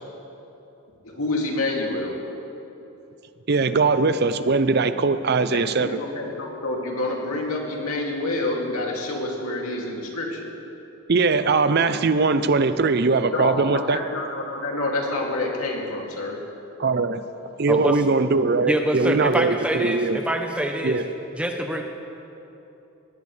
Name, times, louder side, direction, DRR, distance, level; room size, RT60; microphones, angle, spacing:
voice 1, 1.0-2.2 5.5-10.5 13.3-16.4, left 2 dB, 80° left, -1 dB, 2.6 m, -28 dB
voice 2, 3.5-5.9 11.1-14.0 16.8-17.2 17.6-20.2 20.8-21.0, right 4 dB, 45° right, 12 dB, 0.5 m, -21 dB
voice 3, 17.7-18.0 18.7-21.0 21.3-21.8, right 1 dB, 5° right, 3 dB, 0.8 m, -25 dB
20.0 x 17.5 x 3.3 m, 3.0 s
head